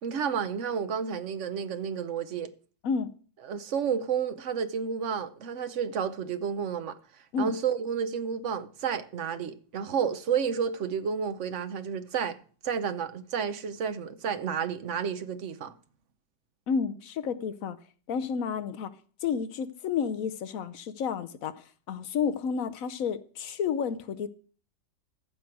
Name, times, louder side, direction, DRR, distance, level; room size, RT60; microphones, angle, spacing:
voice 1, 0.0-2.5 3.4-7.0 7.4-12.4 12.6-15.7, right 7 dB, 55° right, 0.9 m, -31 dB
voice 2, 16.7-17.8 18.1-18.9 19.2-21.5 21.9-24.3, left 6 dB, 65° left, 0.9 m, -30 dB
14.5 x 6.2 x 4.6 m
omnidirectional pair, 1.9 m